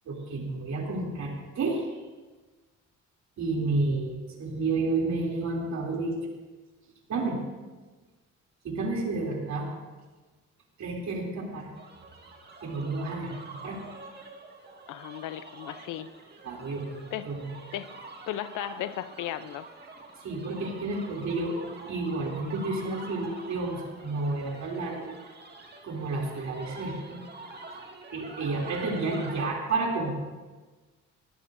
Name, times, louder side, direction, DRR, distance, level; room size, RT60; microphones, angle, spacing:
voice 1, 0.1-2.0 3.4-6.3 7.1-7.4 8.6-9.7 10.8-11.7 12.6-13.8 16.4-17.4 20.2-25.1 25.8-27.2 28.1-30.1, right 3 dB, 65° right, -1 dB, 3.1 m, -31 dB
sound 1, 11.7-29.5, right 3 dB, 35° right, 2.0 m, -46 dB
voice 2, 14.9-16.1 17.1-17.2 17.7-17.9 18.3-19.7, left 12 dB, 85° left, 13 dB, 0.7 m, -35 dB
20.5 x 14.5 x 2.7 m, 1.3 s
cardioid pair, 90°, 30 cm